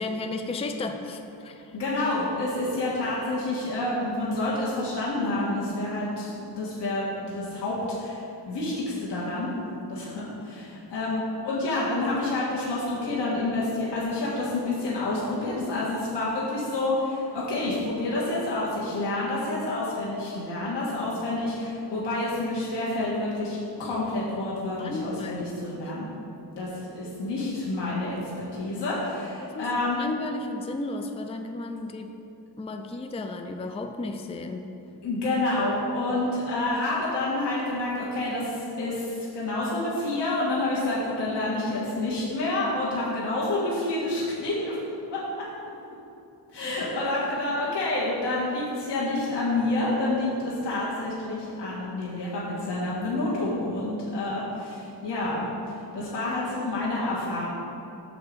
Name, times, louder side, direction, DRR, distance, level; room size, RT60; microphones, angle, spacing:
voice 1, 0.0-1.8 24.8-25.7 29.4-29.7 29.9-32.1 32.6-34.7, left 2 dB, 15° left, 5 dB, 0.4 m, -34 dB
voice 2, 1.7-9.5 9.8-26.1 26.6-30.0 35.0-45.2 46.5-57.5, left 2 dB, 75° left, -7 dB, 1.7 m, -28 dB
6.9 x 4.5 x 6.7 m, 2.9 s
wide cardioid pair, 120°, 41 cm